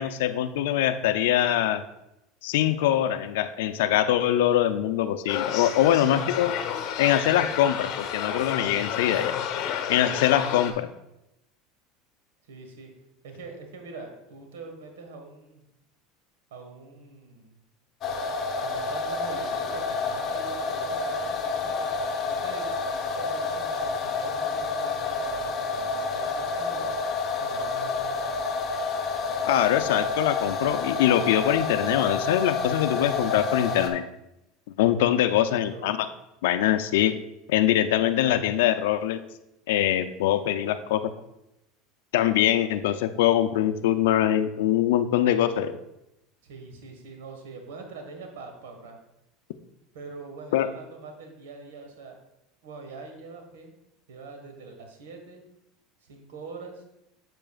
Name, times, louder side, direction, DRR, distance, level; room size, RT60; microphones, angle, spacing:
voice 1, 0.0-1.8 2.4-6.6 7.0-9.4 9.9-10.9 29.4-34.0 34.8-36.1 36.4-37.1 37.5-39.2 39.7-41.0 42.1-45.8 50.5-50.7, left 12 dB, 80° left, 11 dB, 0.5 m, -23 dB
sound 1, 5.3-10.7, left 9 dB, 60° left, 1.0 m, -31 dB
voice 2, 5.8-6.3 12.5-12.9 13.2-15.6 16.5-17.6 18.6-26.9 27.4-28.2 35.1-36.0 46.4-49.0 49.9-52.2 52.6-53.8 54.1-55.4 56.0-56.8, right 4 dB, 85° right, 4 dB, 1.5 m, -43 dB
sound 2, 18.0-33.9, left 4 dB, 40° left, 1.1 m, -29 dB
7.6 x 7.6 x 2.4 m, 0.87 s
supercardioid pair, 110°, 0 cm